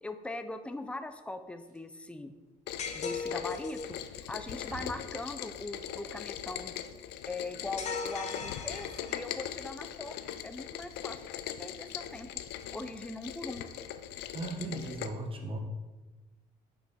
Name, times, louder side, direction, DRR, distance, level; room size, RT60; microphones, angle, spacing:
voice 1, 0.0-2.3 2.9-6.7 7.3-10.2 10.4-12.3 12.7-13.6, left 2 dB, 5° left, 9 dB, 0.4 m, -41 dB
Slam, 1.5-2.1 2.4-2.5 3.0-3.1 3.9-4.2 4.5-5.8 8.5-8.6 8.8-9.0 10.6-10.7, right 2 dB, 55° right, 1.3 m, -51 dB
Rain, 2.7-15.1, left 11 dB, 85° left, 0.4 m, -41 dB
sound 1, 2.8-4.0 7.8-9.4, left 5 dB, 40° left, 0.7 m, -38 dB
voice 2, 14.3-15.6, right 2 dB, 30° right, 3 dB, 1.0 m, -37 dB
5.7 x 4.3 x 4.3 m, 1.2 s
cardioid pair, 110°, 17 cm